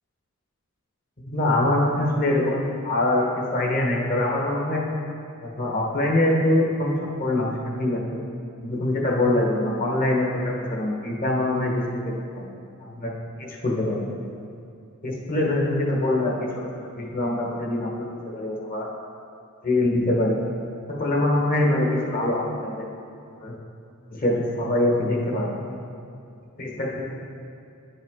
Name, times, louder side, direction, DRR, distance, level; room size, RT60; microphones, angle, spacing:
voice 1, 1.3-4.8 5.4-8.2 8.6-12.0 12.3-12.4 12.8-13.1 13.4-14.0 15.0-16.4 16.8-18.9 19.6-20.4 20.9-22.8 23.4-23.5 24.1-25.9 26.6-27.1, left 1 dB, 40° left, -2 dB, 1.1 m, -24 dB
9.9 x 5.7 x 3.6 m, 2.4 s
head